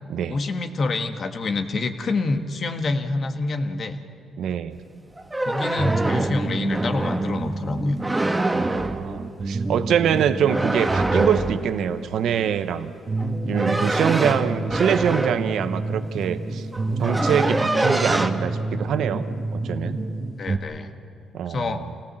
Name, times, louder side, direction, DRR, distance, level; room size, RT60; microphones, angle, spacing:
voice 1, 0.3-4.0 5.4-8.0 20.4-20.9 21.5-21.8, left 3 dB, 50° left, 7 dB, 1.6 m, -27 dB
voice 2, 4.4-4.8 8.5-12.9 13.5-16.7 17.0-20.0 21.3-21.8, right 8 dB, 75° right, 11 dB, 0.8 m, -24 dB
sound 1, 5.2-7.3 8.0-9.0 10.5-11.7 13.2-15.5 16.4-16.5 16.7-18.3, right 2 dB, 15° right, 1.2 m, -25 dB
sound 2, 5.8-20.6, right 2 dB, 30° right, 1.5 m, -29 dB
27.0 x 18.0 x 7.6 m, 2.9 s
cardioid pair, 90°, 0 cm